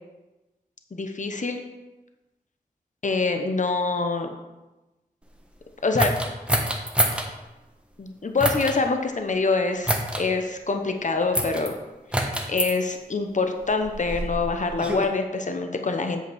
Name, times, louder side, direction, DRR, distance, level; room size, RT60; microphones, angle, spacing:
voice 1, 0.9-1.6 3.0-4.3 5.8-6.1 8.0-11.7 12.1-16.2, left 3 dB, 50° left, 5 dB, 1.0 m, -25 dB
sound 1, 6.0-7.3 8.4-8.8 9.8-10.2 11.3-11.7 12.1-12.7 13.6-15.1, equal, 5° right, 1.2 m, -26 dB
7.9 x 5.2 x 6.1 m, 1.1 s
cardioid pair, 50°, 16 cm